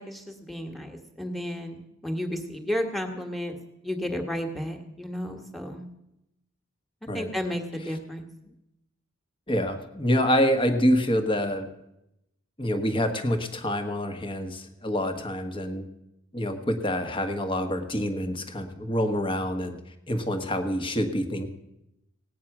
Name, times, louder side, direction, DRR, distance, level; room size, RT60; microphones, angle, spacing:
voice 1, 0.0-3.5 3.8-5.8 7.1-8.2, equal, ahead, 5 dB, 1.6 m, -32 dB
voice 2, 9.5-11.7 12.6-15.9 16.3-19.8 20.1-21.5, equal, 25° left, 7 dB, 1.3 m, -26 dB
17.5 x 9.3 x 6.0 m, 0.87 s
head